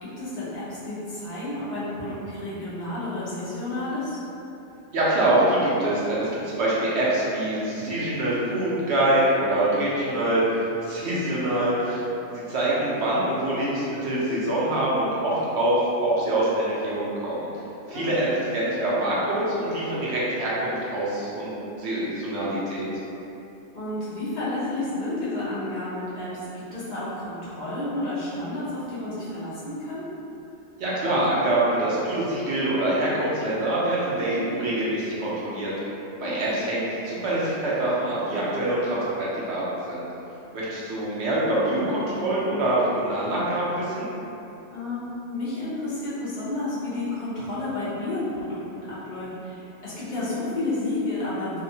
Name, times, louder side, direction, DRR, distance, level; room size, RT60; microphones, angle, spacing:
voice 1, 0.0-4.2 13.5-13.6 17.9-18.2 23.7-30.1 36.2-36.7 44.7-51.6, left 2 dB, 55° left, -11 dB, 0.5 m, -31 dB
voice 2, 4.9-10.4 10.8-12.0 12.3-17.5 17.9-18.3 18.5-22.9 30.8-35.7 36.2-40.0 40.5-44.1, right 1 dB, 65° right, -8 dB, 0.8 m, -25 dB
2.7 x 2.2 x 2.7 m, 2.9 s
omnidirectional pair, 1.4 m